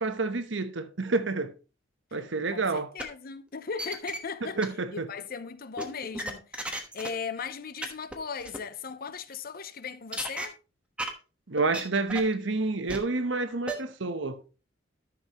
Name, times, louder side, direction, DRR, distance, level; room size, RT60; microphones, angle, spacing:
voice 1, 0.0-1.5 2.1-2.9 4.6-5.1 11.5-14.4, right 3 dB, 75° right, 1.0 m, -29 dB
voice 2, 2.5-4.6 4.9-10.6, left 5 dB, 50° left, 0.7 m, -38 dB
sound 1, 3.0-3.1 3.5-4.2 4.6-4.7 5.8-7.1 7.4-7.5 7.8-7.9 8.1-8.2 8.4-8.6 10.1-10.5 11.0-11.1 11.5-11.8 12.1-12.3 12.9-13.0 13.7-13.8, right 1 dB, 5° right, 1.2 m, -33 dB
13.0 x 6.2 x 3.0 m
head